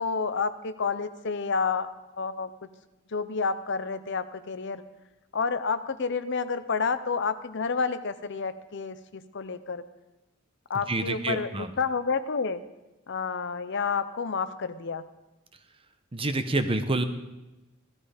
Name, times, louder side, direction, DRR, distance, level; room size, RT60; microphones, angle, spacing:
voice 1, 0.0-1.9 2.2-2.7 3.1-4.8 5.3-9.8 10.7-12.6 13.1-15.0, left 5 dB, 55° left, 12 dB, 0.7 m, -29 dB
voice 2, 10.7-11.7 16.1-17.0, right 2 dB, 25° right, 9 dB, 0.9 m, -28 dB
16.0 x 12.0 x 5.1 m, 1.0 s
head